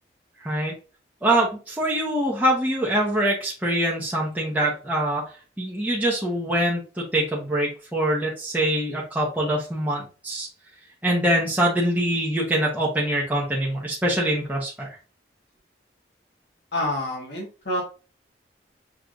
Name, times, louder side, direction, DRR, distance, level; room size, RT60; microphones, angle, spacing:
voice 1, 0.4-0.7 1.2-5.3 5.6-10.5 11.0-14.9, right 1 dB, 10° right, -5 dB, 1.0 m, -24 dB
voice 2, 16.7-17.8, left 1 dB, 65° left, -2 dB, 1.4 m, -27 dB
6.3 x 3.3 x 2.5 m, 0.34 s
head